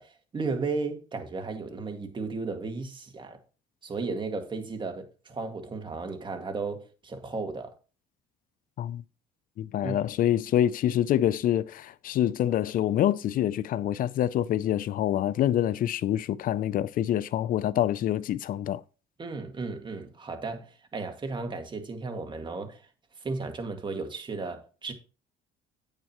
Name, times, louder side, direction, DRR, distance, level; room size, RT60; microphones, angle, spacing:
voice 1, 0.0-3.4 3.8-7.7 9.8-10.0 19.2-22.8 23.2-24.9, right 3 dB, 25° right, 1.9 m, -34 dB
voice 2, 9.6-18.8, left 11 dB, 55° left, 0.5 m, -26 dB
8.9 x 8.8 x 3.0 m
cardioid pair, 105°, 17 cm